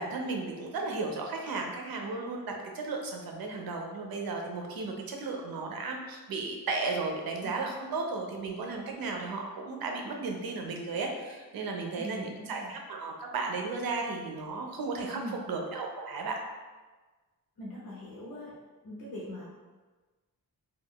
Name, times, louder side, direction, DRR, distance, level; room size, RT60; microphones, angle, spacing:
voice 1, 0.0-16.4, right 3 dB, 75° right, 2 dB, 0.6 m, -35 dB
voice 2, 11.9-12.7 15.1-15.4 17.6-18.5 18.8-19.4, left 1 dB, 65° left, -6 dB, 0.7 m, -41 dB
2.3 x 2.3 x 3.5 m, 1.3 s
wide cardioid pair, 130°, 36 cm